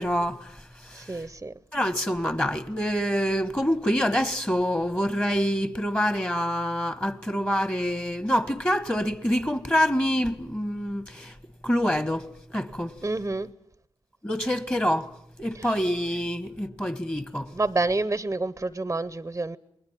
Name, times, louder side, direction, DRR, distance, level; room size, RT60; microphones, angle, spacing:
voice 1, 0.0-1.2 1.7-11.3 11.6-12.9 14.2-15.1 15.4-17.5, equal, 15° left, 1.6 m, -26 dB
voice 2, 0.9-1.5 13.0-13.5 15.6-15.7 17.5-19.6, right 2 dB, 20° right, 0.9 m, -28 dB
28.5 x 20.5 x 7.6 m
supercardioid pair, 45°, 11 cm